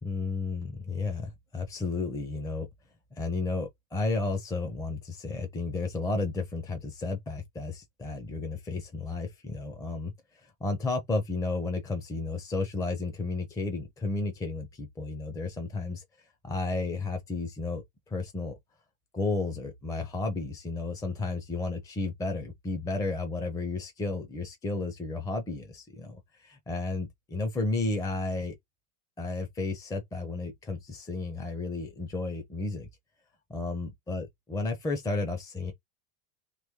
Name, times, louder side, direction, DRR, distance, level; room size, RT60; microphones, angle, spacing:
voice 1, 0.0-2.7 3.2-10.1 10.4-18.5 19.1-28.5 29.2-32.9 33.5-35.7, left 3 dB, 10° left, 0.5 m, -33 dB
3.1 x 3.0 x 3.5 m
supercardioid pair, 140°, 44 cm